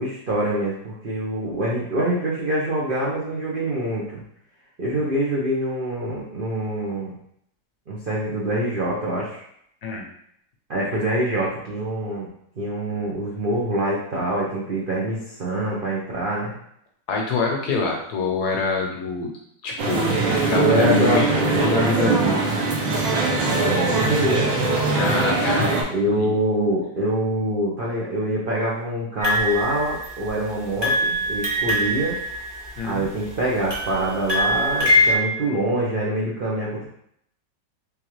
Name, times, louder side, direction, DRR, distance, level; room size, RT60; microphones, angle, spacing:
voice 1, 0.0-4.2 4.8-7.1 7.9-9.4 10.7-12.3 12.6-16.5 20.6-21.2 23.6-24.5 25.9-32.2 32.8-36.8, right 1 dB, 65° right, -5 dB, 0.5 m, -25 dB
voice 2, 17.1-19.3 19.6-22.4 24.9-26.3 32.8-33.1, left 3 dB, 70° left, 0 dB, 1.1 m, -26 dB
sound 1, 19.8-25.8, right 2 dB, 80° right, 1.5 m, -21 dB
sound 2, 29.2-30.4 30.8-33.0 33.7-35.1, left 1 dB, 20° right, 0.8 m, -23 dB
3.6 x 3.4 x 3.1 m, 0.71 s
omnidirectional pair, 2.0 m